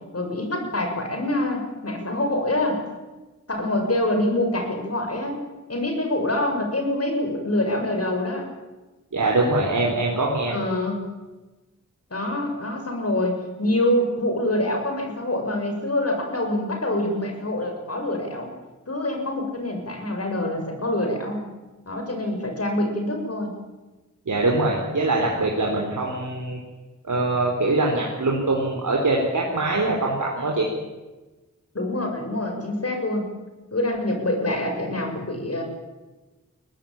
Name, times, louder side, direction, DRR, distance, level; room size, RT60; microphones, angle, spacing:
voice 1, 0.1-2.8 3.5-5.4 5.7-8.5 10.5-11.0 12.1-18.5 18.9-21.4 21.9-23.5 31.7-33.2 33.7-35.6, left 1 dB, 50° left, 3 dB, 7.2 m, -25 dB
voice 2, 9.1-10.5 24.3-26.6 27.0-30.7, right 2 dB, 80° right, -1 dB, 4.0 m, -23 dB
23.5 x 19.0 x 8.9 m, 1.2 s
wide cardioid pair, 65°, 30 cm